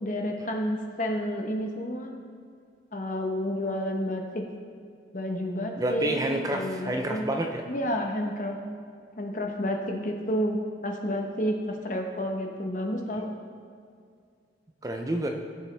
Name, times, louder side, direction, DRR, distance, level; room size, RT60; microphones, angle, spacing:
voice 1, 0.0-2.1 2.9-4.4 5.1-6.1 6.5-7.3 7.7-8.6 9.2-10.6 10.8-13.3, equal, 45° left, 2 dB, 1.0 m, -30 dB
voice 2, 5.8-7.6 14.8-15.3, right 1 dB, 20° right, 3 dB, 0.5 m, -28 dB
15.5 x 7.0 x 3.4 m, 2.2 s
head